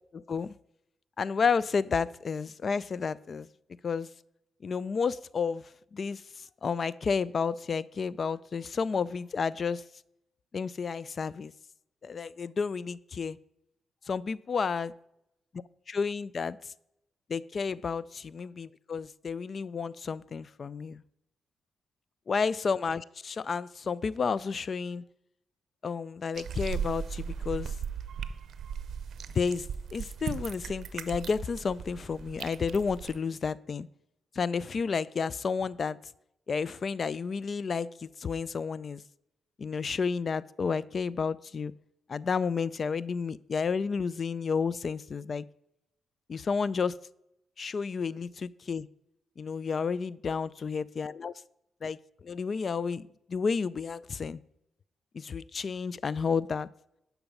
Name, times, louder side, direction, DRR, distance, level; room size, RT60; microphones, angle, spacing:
voice 1, 0.1-0.5 1.2-3.5 3.8-4.1 4.6-5.6 5.9-6.2 6.6-9.8 10.5-11.5 12.0-13.4 14.1-14.9 15.9-16.6 17.3-21.0 22.3-25.0 25.8-27.7 29.4-33.9 34.4-36.0 36.5-39.0 39.6-41.7 42.1-45.5 46.3-46.9 47.6-48.9 49.4-51.3 51.8-52.0 52.2-54.4 55.1-56.7, left 5 dB, 50° left, 20 dB, 0.4 m, -31 dB
sound 1, 26.3-33.2, right 7 dB, 65° right, 0.7 m, -37 dB
10.5 x 5.9 x 5.4 m, 0.81 s
cardioid pair, 75°, 0 cm